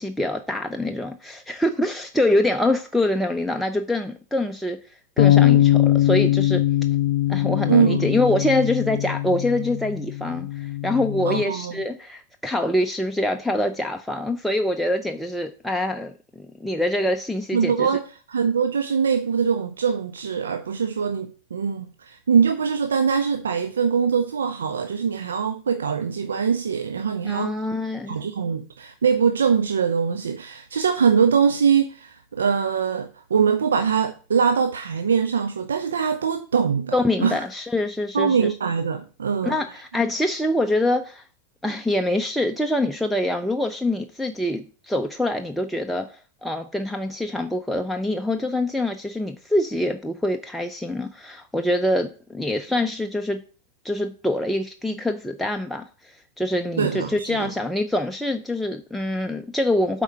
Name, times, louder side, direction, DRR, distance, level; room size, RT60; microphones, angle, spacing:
voice 1, 0.0-4.8 5.2-6.6 7.3-17.9 27.2-28.2 36.9-38.5 39.4-41.2 41.6-53.4 53.8-60.0, left 1 dB, ahead, 0.6 m, -25 dB
sound 1, 5.2-11.4, left 13 dB, 60° left, 0.5 m, -21 dB
voice 2, 7.7-8.1 11.3-11.7 17.5-18.0 18.3-27.5 28.1-36.9 37.2-37.4 38.1-39.6 56.8-57.5, right 6 dB, 70° right, 0.6 m, -22 dB
8.1 x 4.5 x 5.6 m
figure-of-eight pair, 90°, 0 cm